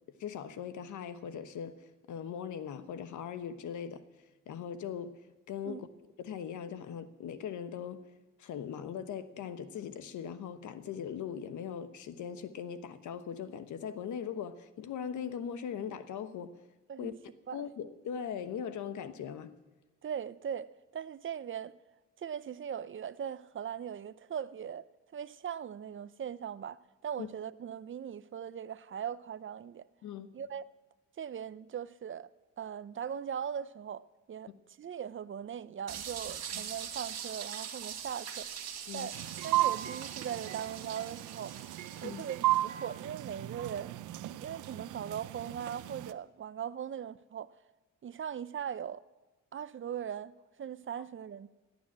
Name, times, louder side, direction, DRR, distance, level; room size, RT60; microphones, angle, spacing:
voice 1, 0.2-4.0 4.5-5.9 6.2-8.0 8.4-16.6 17.0-17.1 17.5-19.5 27.2-27.3 30.0-30.3 36.5-36.6 38.9-39.1 42.0-42.2, left 8 dB, 75° left, 1.2 m, -40 dB
voice 2, 20.0-21.7 22.2-24.8 25.1-29.9 30.3-30.6 31.2-32.3 32.6-34.5 34.8-38.6 38.9-39.2 39.4-41.6 42.0-44.0 44.4-47.5 48.0-49.0 49.5-50.3 50.6-51.5, right 8 dB, 40° right, 0.6 m, -40 dB
sound 1, 35.9-42.7, right 8 dB, 60° right, 1.8 m, -42 dB
sound 2, 39.1-46.1, right 15 dB, 80° right, 0.7 m, -35 dB
17.5 x 9.5 x 8.6 m
cardioid pair, 90°, 30 cm